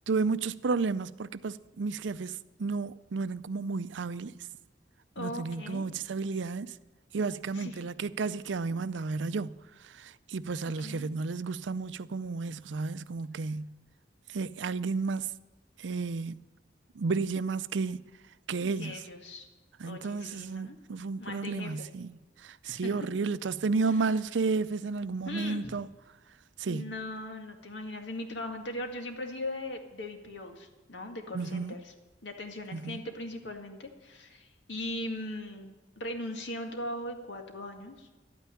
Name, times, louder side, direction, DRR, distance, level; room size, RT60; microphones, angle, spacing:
voice 1, 0.1-4.4 5.2-6.7 7.1-9.6 9.8-13.7 14.3-15.3 15.8-16.4 17.0-18.0 18.5-19.0 19.8-25.9 26.6-26.9 31.3-31.8 32.7-33.0, right 4 dB, 85° right, 0.5 m, -32 dB
voice 2, 5.2-5.9 7.5-7.8 10.7-11.1 18.8-19.5 19.8-20.8 21.2-21.9 22.6-23.0 23.9-24.0 25.3-25.7 26.6-31.9 32.2-38.1, left 1 dB, 85° left, 2.0 m, -39 dB
12.5 x 9.2 x 9.9 m
head